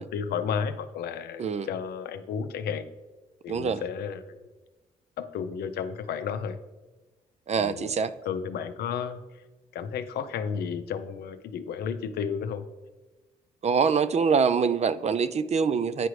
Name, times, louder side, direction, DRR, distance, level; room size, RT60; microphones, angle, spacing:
voice 1, 0.0-2.8 3.4-4.4 5.2-6.6 7.5-7.9 8.2-9.2 9.7-12.6, left 7 dB, 75° left, 10 dB, 0.5 m, -32 dB
voice 2, 3.5-3.8 7.5-8.1 13.6-16.1, right 6 dB, 40° right, 14 dB, 0.4 m, -24 dB
9.2 x 4.8 x 3.2 m, 1.2 s
supercardioid pair, 60°, 17 cm